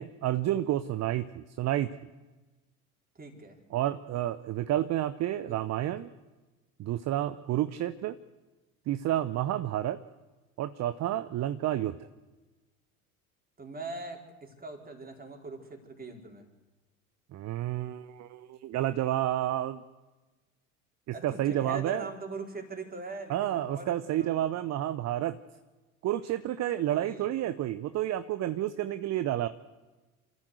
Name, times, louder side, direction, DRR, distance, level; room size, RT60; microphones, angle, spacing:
voice 1, 0.0-2.0 3.7-6.1 6.8-8.2 8.9-10.0 10.6-12.0 17.3-19.8 21.2-22.0 23.3-25.4 26.0-29.5, right 13 dB, 40° right, 12 dB, 0.9 m, -30 dB
voice 2, 3.1-3.6 5.4-5.6 13.6-16.5 21.1-24.5 26.9-27.3, right 3 dB, 20° right, 3 dB, 4.6 m, -41 dB
28.0 x 14.0 x 8.0 m, 1.2 s
figure-of-eight pair, 70°, 43 cm